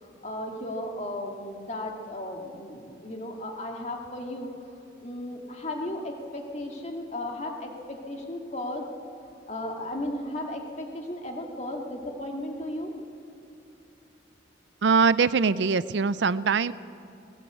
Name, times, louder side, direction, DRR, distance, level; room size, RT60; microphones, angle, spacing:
voice 1, 0.0-4.5 5.0-8.9 9.5-12.9, left 1 dB, 35° left, 1 dB, 2.3 m, -35 dB
voice 2, 14.8-16.7, right 5 dB, 65° right, 16 dB, 0.5 m, -22 dB
19.5 x 18.0 x 8.2 m, 2.6 s
head